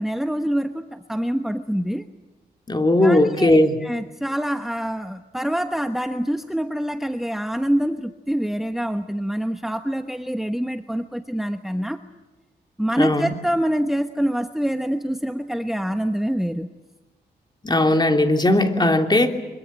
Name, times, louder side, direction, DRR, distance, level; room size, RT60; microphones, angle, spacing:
voice 1, 0.0-2.0 3.0-12.0 12.8-16.7, equal, ahead, 7 dB, 1.1 m, -25 dB
voice 2, 2.7-3.7 13.0-13.3 17.6-19.3, left 1 dB, 25° left, 4 dB, 3.0 m, -18 dB
24.5 x 23.0 x 9.0 m, 1.1 s
cardioid pair, 70°, 17 cm